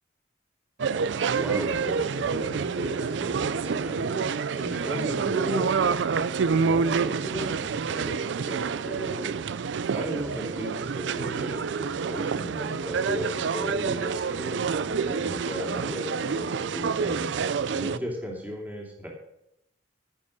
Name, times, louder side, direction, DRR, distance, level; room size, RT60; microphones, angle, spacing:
sound 1, 0.8-18.0, right 5 dB, 70° right, 0.4 m, -28 dB
voice 1, 1.3-4.3 4.5-5.7 6.5-9.3 9.9-17.3 17.7-19.1, equal, 10° right, -1 dB, 2.7 m, -35 dB
15.5 x 7.2 x 6.1 m, 0.82 s
head